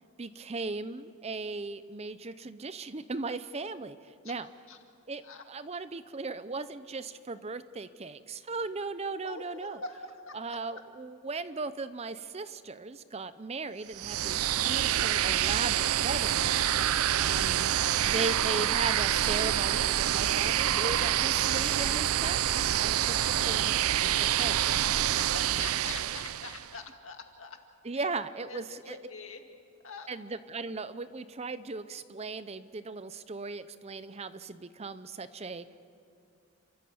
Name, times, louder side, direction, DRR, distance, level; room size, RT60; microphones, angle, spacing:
voice 1, 0.2-4.5 5.1-5.2 5.5-9.8 10.3-17.8 18.1-23.2 23.4-24.6 27.8-29.0 30.1-35.8, right 3 dB, 30° right, 13 dB, 0.6 m, -37 dB
voice 2, 9.2-10.6 17.5-18.0 25.1-27.6 27.9-28.1 28.4-29.4 29.8-30.1, left 4 dB, 65° left, 4 dB, 2.1 m, -44 dB
sound 1, 13.9-26.7, right 11 dB, 80° right, 0.5 m, -27 dB
29.5 x 13.5 x 7.8 m, 2.5 s
head